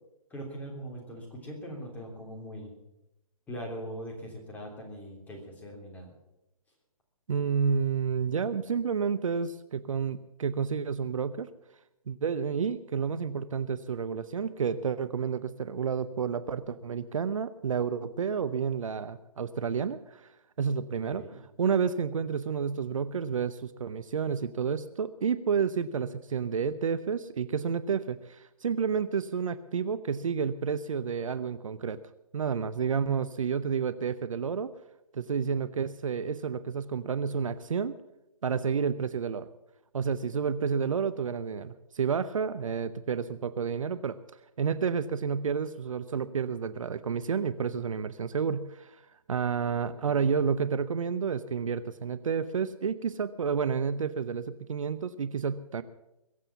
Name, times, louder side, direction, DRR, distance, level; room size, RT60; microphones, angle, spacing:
voice 1, 0.3-2.7 3.5-6.1 20.9-21.4 50.0-50.3, equal, 10° left, -1 dB, 3.3 m, -41 dB
voice 2, 7.3-11.5 12.1-20.2 20.6-21.2 21.6-32.0 32.3-34.7 35.1-38.0 38.4-39.5 39.9-44.2 44.6-49.0 49.3-55.8, right 6 dB, 60° right, 14 dB, 0.8 m, -30 dB
22.0 x 7.7 x 7.0 m, 0.89 s
figure-of-eight pair, 140°, 19 cm